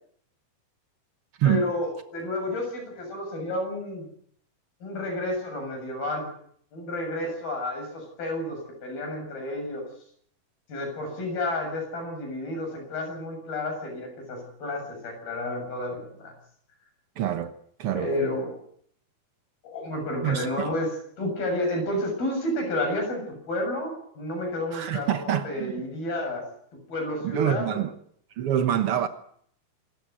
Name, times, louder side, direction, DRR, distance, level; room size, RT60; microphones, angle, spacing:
voice 1, 1.5-4.1 4.8-6.3 6.7-9.9 10.7-16.3 18.0-18.6 19.6-26.4 26.9-27.8, left 1 dB, 75° left, 9.2 m, -31 dB
voice 2, 17.2-17.5 17.8-18.1 20.2-20.7 24.7-25.7 27.2-27.9 28.4-29.1, right 10 dB, 85° right, 1.2 m, -26 dB
27.0 x 14.0 x 9.4 m
omnidirectional pair, 4.4 m